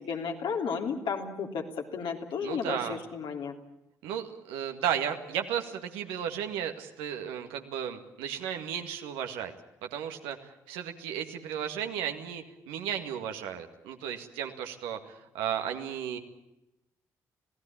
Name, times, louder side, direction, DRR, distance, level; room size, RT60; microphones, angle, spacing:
voice 1, 0.0-1.6 1.9-3.5, left 6 dB, 65° left, 2 dB, 3.4 m, -33 dB
voice 2, 2.4-3.0 4.0-9.5 9.8-16.2, right 9 dB, 80° right, 5 dB, 2.0 m, -34 dB
26.5 x 17.0 x 8.7 m, 0.89 s
hypercardioid pair, 50°, 9 cm